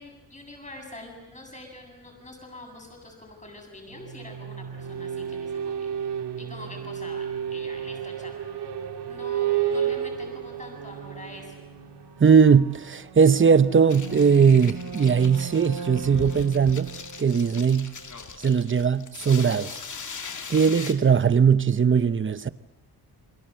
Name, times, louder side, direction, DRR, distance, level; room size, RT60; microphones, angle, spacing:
voice 1, 0.0-8.4 9.0-11.7, left 1 dB, 20° left, 7.8 m, -45 dB
sound 1, 3.9-18.5, right 8 dB, 90° right, 2.0 m, -33 dB
voice 2, 12.2-16.9 17.2-17.9 18.4-19.7 20.5-22.5, right 6 dB, 30° right, 0.8 m, -19 dB
sound 2, 13.9-20.9, left 5 dB, 45° left, 2.3 m, -40 dB
28.5 x 23.5 x 7.8 m
wide cardioid pair, 135°, 40 cm